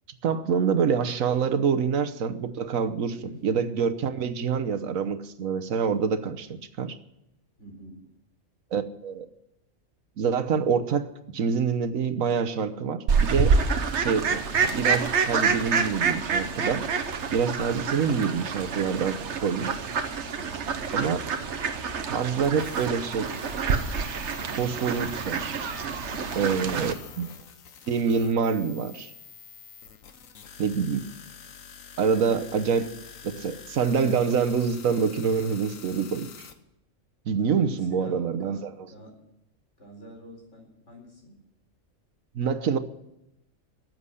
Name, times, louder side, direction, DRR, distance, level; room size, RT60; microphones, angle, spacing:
voice 1, 0.2-3.1 3.4-7.0 8.7-9.3 10.2-13.5 13.9-16.9 17.3-19.8 20.9-21.2 22.1-23.3 24.6-25.6 26.3-27.3 27.9-29.1 30.6-31.0 32.0-32.9 33.4-36.5 37.3-38.7 42.3-42.8, right 6 dB, 80° right, 9 dB, 1.4 m, -26 dB
voice 2, 3.1-3.4 7.6-8.1 20.5-20.9 37.6-39.2 39.8-41.4, left 1 dB, 60° left, 1 dB, 4.5 m, -47 dB
Fowl, 13.1-26.9, right 5 dB, 60° right, 1.3 m, -27 dB
sound 1, 22.4-36.5, left 7 dB, 80° left, 1.4 m, -47 dB
14.0 x 7.8 x 9.8 m, 0.84 s
omnidirectional pair, 1.4 m